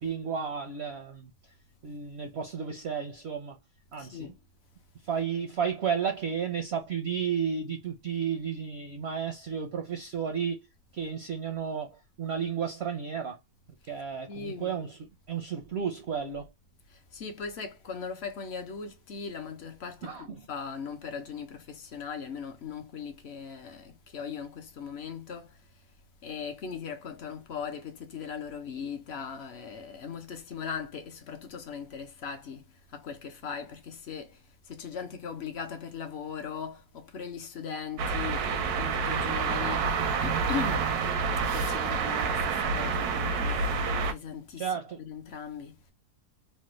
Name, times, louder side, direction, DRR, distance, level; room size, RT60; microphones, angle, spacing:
voice 1, 0.0-1.3 1.8-3.6 3.9-4.3 5.1-10.7 10.9-13.4 13.9-15.0 15.3-16.5 20.0-20.5 44.6-45.0, right 7 dB, 60° right, 0.7 m, -32 dB
voice 2, 4.0-4.4 14.3-14.8 16.9-25.8 26.2-39.9 40.2-40.9 41.5-43.7 44.1-45.9, left 6 dB, 60° left, 0.7 m, -39 dB
sound 1, 38.0-44.1, right 5 dB, 80° right, 1.1 m, -28 dB
3.3 x 2.2 x 3.0 m
omnidirectional pair, 1.6 m